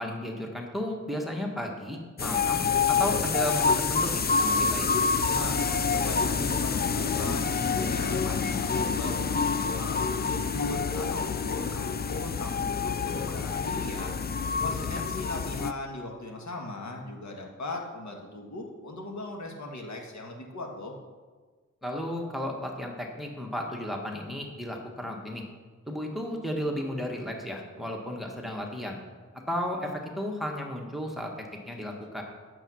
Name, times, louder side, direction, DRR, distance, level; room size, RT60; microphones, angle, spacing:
voice 1, 0.0-4.9 14.8-15.0 21.8-25.4 25.9-29.0 29.5-31.3 31.7-32.2, equal, ahead, 1 dB, 1.3 m, -34 dB
sound 1, 2.2-15.7, left 5 dB, 35° left, 0.4 m, -27 dB
voice 2, 5.3-14.1 14.6-20.9, left 1 dB, 65° left, 1 dB, 1.6 m, -38 dB
8.8 x 7.3 x 6.1 m, 1.4 s
wide cardioid pair, 110°, 30 cm